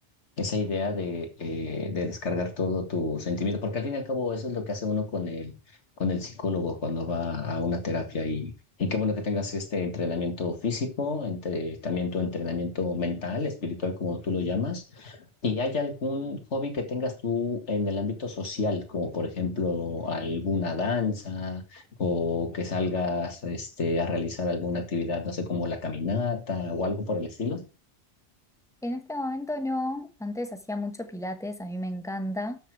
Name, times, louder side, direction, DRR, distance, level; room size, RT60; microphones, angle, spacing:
voice 1, 0.4-5.5 6.0-8.5 8.8-27.6, left 3 dB, 75° left, 2.2 m, -29 dB
voice 2, 28.8-32.6, left 1 dB, 5° left, 1.2 m, -32 dB
12.5 x 6.9 x 4.7 m
omnidirectional pair, 1.2 m